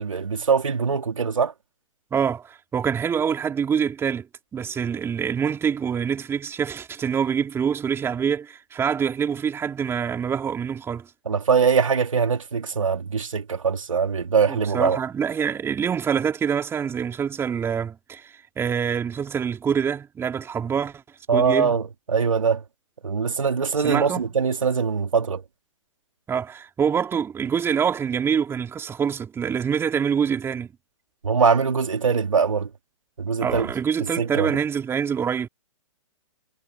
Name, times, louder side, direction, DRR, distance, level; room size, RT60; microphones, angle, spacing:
voice 1, 0.0-1.5 11.3-15.0 21.3-22.6 23.0-25.4 31.2-32.7 33.2-33.7 34.0-34.5, right 6 dB, 85° right, 3.5 m, -22 dB
voice 2, 2.1-4.3 4.5-11.1 14.5-21.0 21.3-21.7 23.8-24.2 26.3-30.7 33.4-35.5, right 7 dB, 15° right, 3.7 m, -25 dB
hypercardioid pair, 125°, 16 cm